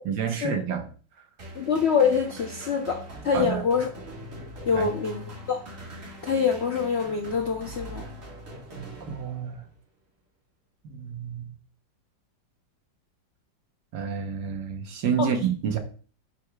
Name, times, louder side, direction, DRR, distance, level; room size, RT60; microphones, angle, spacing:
voice 1, 0.0-0.9 3.3-3.6 4.7-4.9 8.7-9.6 10.8-11.6 13.9-15.8, right 7 dB, 70° right, 1.5 m, -29 dB
sound 1, 1.4-9.7, equal, 45° right, 2.1 m, -42 dB
voice 2, 1.6-3.9 4.7-5.6 6.2-8.0 15.2-15.3, left 6 dB, 65° left, 0.6 m, -25 dB
10.0 x 4.9 x 2.3 m
omnidirectional pair, 2.0 m